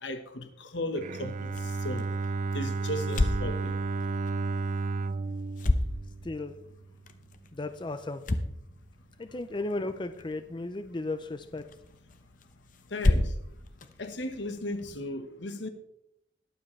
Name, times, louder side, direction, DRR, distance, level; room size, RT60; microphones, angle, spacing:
voice 1, 0.0-2.1 2.5-3.8 12.9-13.3 14.0-15.7, left 1 dB, 70° left, 1.3 m, -36 dB
Bowed string instrument, 1.0-6.9, right 3 dB, 40° right, 0.4 m, -33 dB
sound 1, 1.4-15.0, left 1 dB, 45° left, 0.8 m, -34 dB
voice 2, 6.2-6.5 7.5-8.2 9.2-11.6, left 2 dB, 25° left, 0.5 m, -35 dB
21.0 x 7.5 x 3.3 m
head